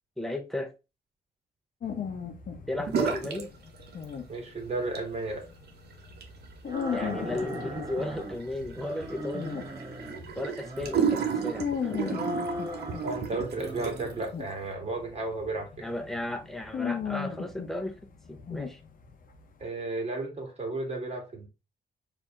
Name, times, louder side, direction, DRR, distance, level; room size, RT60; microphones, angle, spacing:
voice 1, 0.2-0.7 2.7-3.5 6.9-9.5 10.3-12.2 15.8-18.0 18.3-18.8, left 1 dB, ahead, 0.9 m, -34 dB
sound 1, 1.8-10.4 10.9-19.4, left 7 dB, 55° left, 0.9 m, -37 dB
sound 2, 2.9-3.5 3.7-4.4 4.8-14.2, right 7 dB, 75° right, 1.0 m, -34 dB
voice 2, 4.3-5.5 6.9-7.2 13.0-15.9 19.6-21.5, right 2 dB, 40° right, 1.8 m, -33 dB
sound 3, 6.7-8.4 8.8-10.2 10.6-11.7 12.1-13.3 13.5-14.3, equal, 20° right, 1.0 m, -38 dB
4.5 x 2.8 x 3.6 m
cardioid pair, 115°, 17 cm